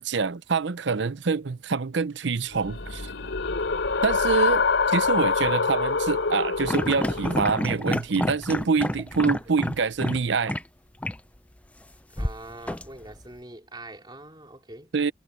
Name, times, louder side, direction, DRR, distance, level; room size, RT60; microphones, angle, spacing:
voice 1, 0.0-3.1 4.0-10.6 14.9-15.1, right 5 dB, 70° right, 0.7 m, -26 dB
sound 1, 2.5-7.6, left 4 dB, 85° left, 3.5 m, -25 dB
sound 2, 6.6-10.2 10.5-10.6 11.0-11.2 12.2-13.3, left 1 dB, 5° left, 0.5 m, -29 dB
voice 2, 12.2-14.9, right 2 dB, 25° right, 3.8 m, -43 dB
head